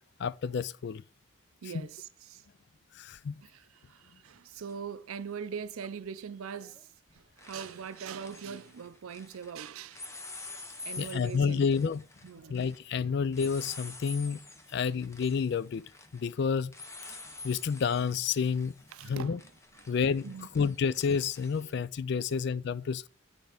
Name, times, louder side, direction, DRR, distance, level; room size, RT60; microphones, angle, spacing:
voice 1, 0.2-1.0 3.0-3.4 11.0-12.0 12.5-14.4 14.7-15.8 16.1-16.7 17.1-17.2 17.4-18.8 19.0-19.4 19.9-23.1, left 6 dB, 55° left, 0.3 m, -29 dB
voice 2, 1.6-2.4 3.4-6.9 7.1-10.1 10.8-11.7 12.2-12.6 14.7-14.8 18.9-19.4 19.8-20.0 20.2-20.5 21.6-21.8 22.2-22.3, right 6 dB, 85° right, 0.5 m, -42 dB
sound 1, 4.7-4.8 6.5-6.8 7.1-9.5 9.9-21.7, left 3 dB, 15° left, 0.6 m, -48 dB
8.9 x 3.5 x 4.9 m
head